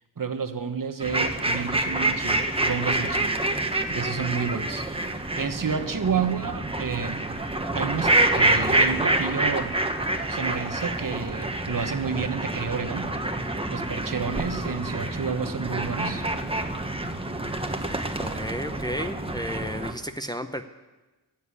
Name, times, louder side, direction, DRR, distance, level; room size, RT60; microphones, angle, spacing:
voice 1, 0.2-3.4 3.9-4.9 5.4-7.4 7.7-9.8 10.3-13.1 13.7-16.2, right 6 dB, 50° right, 9 dB, 1.2 m, -30 dB
sound 1, 1.0-19.9, right 2 dB, 15° right, 1.3 m, -27 dB
voice 2, 18.2-20.6, equal, 10° left, 7 dB, 0.8 m, -33 dB
15.0 x 7.4 x 9.8 m, 1.1 s
cardioid pair, 65°, 42 cm